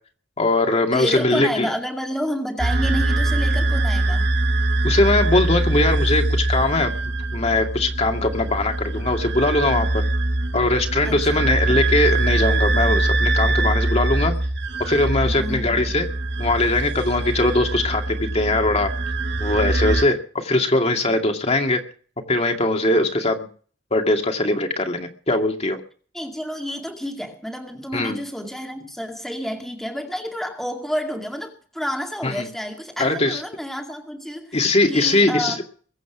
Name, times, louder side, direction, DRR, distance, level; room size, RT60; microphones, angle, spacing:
voice 1, 0.4-1.7 4.8-6.9 7.3-10.0 10.5-14.3 14.8-16.1 16.4-18.9 19.4-21.8 22.3-23.5 23.9-25.8 27.9-28.2 32.2-32.5 33.0-33.4 34.5-35.6, left 2 dB, 35° left, 2.3 m, -21 dB
voice 2, 0.9-4.3 11.0-11.4 15.3-16.0 26.1-34.6 34.9-35.6, equal, ahead, 2.3 m, -30 dB
sound 1, 2.6-20.0, right 2 dB, 65° right, 1.6 m, -23 dB
22.5 x 8.4 x 6.1 m
head